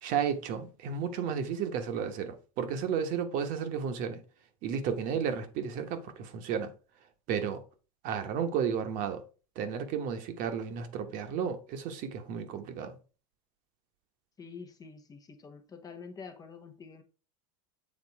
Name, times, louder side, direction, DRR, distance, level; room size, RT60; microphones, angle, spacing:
voice 1, 0.0-4.2 4.6-6.7 7.3-7.6 8.0-9.2 9.5-13.0, right 7 dB, 50° right, 1.2 m, -33 dB
voice 2, 14.4-17.0, left 5 dB, 20° left, 1.0 m, -47 dB
7.5 x 3.7 x 4.6 m
supercardioid pair, 125°, 18 cm